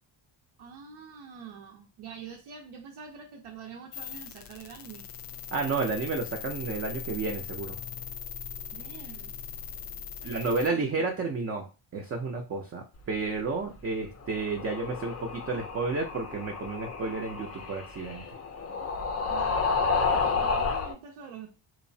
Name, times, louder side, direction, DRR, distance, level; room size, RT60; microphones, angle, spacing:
voice 1, 0.6-5.1 8.7-9.3 10.2-11.1 19.3-19.7 20.4-21.6, right 6 dB, 75° right, 0.6 m, -46 dB
sound 1, 3.9-10.7, left 7 dB, 90° left, 0.5 m, -40 dB
voice 2, 5.5-7.8 10.2-18.2, right 3 dB, 30° right, 0.4 m, -31 dB
sound 2, 14.2-20.9, left 4 dB, 35° left, 0.4 m, -30 dB
2.9 x 2.0 x 2.6 m
cardioid pair, 120°, 50 cm